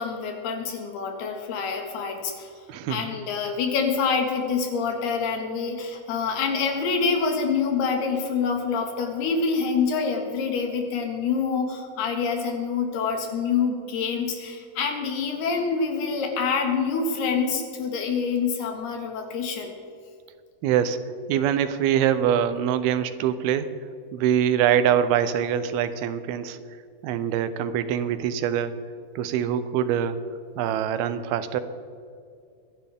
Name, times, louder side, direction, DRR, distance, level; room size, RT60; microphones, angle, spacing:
voice 1, 0.0-2.5 2.9-19.7, left 5 dB, 85° left, 3 dB, 3.8 m, -26 dB
voice 2, 2.7-3.1 20.6-21.0 21.3-23.7 24.1-26.6 27.0-28.8 29.2-30.2 30.6-31.6, right 9 dB, 80° right, 11 dB, 2.6 m, -24 dB
24.5 x 11.0 x 3.5 m, 2.4 s
omnidirectional pair, 4.5 m